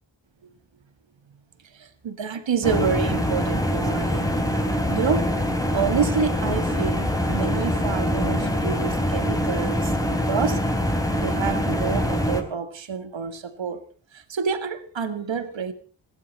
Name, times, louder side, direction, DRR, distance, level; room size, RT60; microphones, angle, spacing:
voice 1, 1.7-4.3 4.9-5.4 5.7-9.9 10.2-10.6 11.1-13.9 14.1-15.7, right 6 dB, 90° right, 1.8 m, -28 dB
sound 1, 2.6-12.4, equal, 10° left, 4.1 m, -24 dB
21.0 x 15.5 x 4.1 m
cardioid pair, 50°, 44 cm